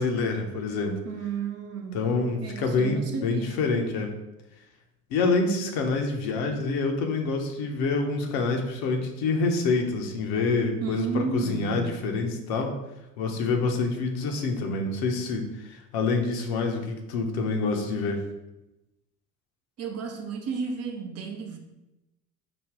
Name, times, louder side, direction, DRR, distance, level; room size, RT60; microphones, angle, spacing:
voice 1, 0.0-1.0 1.9-4.1 5.1-12.8 13.2-18.2, left 3 dB, 60° left, 3 dB, 0.8 m, -27 dB
voice 2, 1.0-2.1 2.4-3.7 10.8-11.9 19.8-21.6, right 6 dB, 40° right, 4 dB, 0.7 m, -33 dB
5.0 x 2.3 x 3.5 m, 0.96 s
hypercardioid pair, 70°, 41 cm